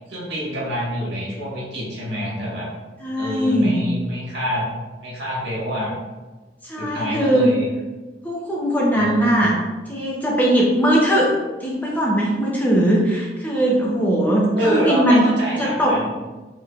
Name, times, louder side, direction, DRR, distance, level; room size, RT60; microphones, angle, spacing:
voice 1, 0.1-2.7 3.1-4.7 5.0-5.9 6.8-7.7 8.9-9.6 14.5-16.1, equal, 70° right, -5 dB, 1.4 m, -26 dB
voice 2, 3.0-3.8 6.7-7.5 8.2-9.5 9.9-11.3 11.6-15.2 15.6-16.1, right 1 dB, 10° left, -4 dB, 0.5 m, -19 dB
4.7 x 3.0 x 2.3 m, 1.2 s
head